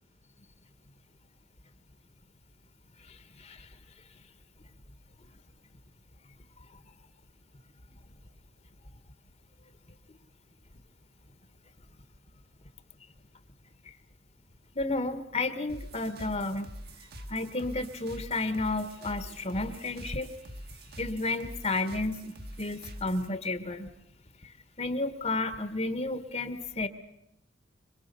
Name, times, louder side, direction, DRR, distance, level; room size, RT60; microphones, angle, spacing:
voice 1, 3.1-3.7 13.8-13.9 14.7-16.7 17.3-20.3 21.0-23.9 24.4-24.5 24.8-26.9, left 2 dB, 35° left, 11 dB, 1.5 m, -32 dB
sound 1, 15.7-23.3, equal, 55° right, 2.1 m, -45 dB
26.0 x 22.5 x 6.9 m, 0.81 s
head